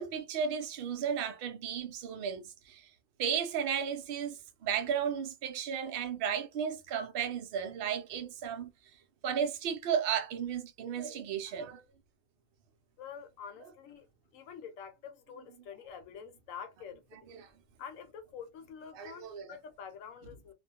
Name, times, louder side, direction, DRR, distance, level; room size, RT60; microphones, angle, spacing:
voice 1, 0.0-2.9 3.2-8.7 9.2-11.8 17.3-17.5 18.9-19.5, right 7 dB, 60° right, 0.6 m, -34 dB
voice 2, 13.0-14.0 14.3-17.3 17.8-20.5, left 7 dB, 75° left, 1.0 m, -47 dB
2.4 x 2.2 x 2.7 m
omnidirectional pair, 1.4 m